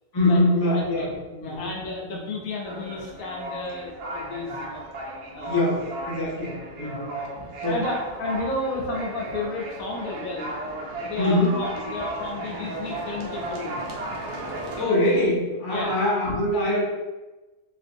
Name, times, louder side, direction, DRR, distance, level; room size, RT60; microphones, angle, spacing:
voice 1, 0.1-1.1 1.4-1.7 5.5-7.1 7.6-7.8 11.2-11.6 14.8-16.8, left 1 dB, 40° left, -4 dB, 0.3 m, -23 dB
voice 2, 0.7-4.8 5.3-5.7 7.1-10.5 11.0-13.9 14.6-14.9 15.7-16.0, left 2 dB, 70° left, -1 dB, 1.0 m, -32 dB
sound 1, 2.6-14.8, right 1 dB, 85° right, 1.2 m, -35 dB
3.6 x 2.5 x 2.5 m, 1.1 s
omnidirectional pair, 1.6 m